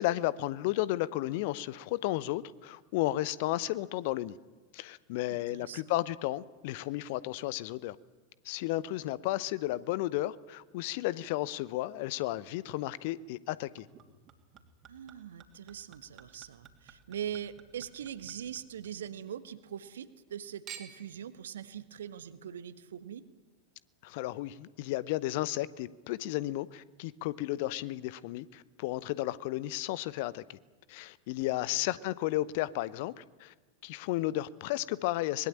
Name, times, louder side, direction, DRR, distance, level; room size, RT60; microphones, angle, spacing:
voice 1, 0.0-4.4 4.7-8.0 8.4-13.9 24.0-30.6 30.9-33.5 33.8-35.5, left 16 dB, 50° left, 0.8 m, -33 dB
voice 2, 5.3-5.9 14.9-23.2 31.7-32.1, right 9 dB, 65° right, 1.4 m, -42 dB
Chink clink / Liquid, 13.8-19.3 19.6-20.3 20.7-21.2 21.9-22.0, right 8 dB, 30° right, 2.9 m, -53 dB
24.0 x 20.5 x 8.8 m
figure-of-eight pair, 90°, 0 cm